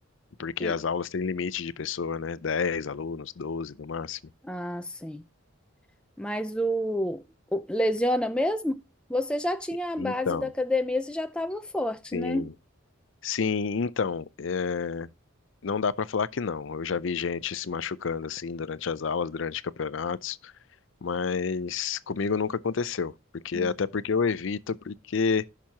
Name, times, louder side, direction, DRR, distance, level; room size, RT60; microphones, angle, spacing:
voice 1, 0.4-4.2 10.0-10.5 12.1-12.5 13.2-15.1 15.6-20.5 21.0-25.5, left 5 dB, 65° left, 0.5 m, -29 dB
voice 2, 4.4-5.2 6.2-7.2 7.5-8.8 9.1-12.5 23.5-23.7, left 1 dB, 5° left, 0.5 m, -28 dB
15.0 x 6.0 x 2.9 m
head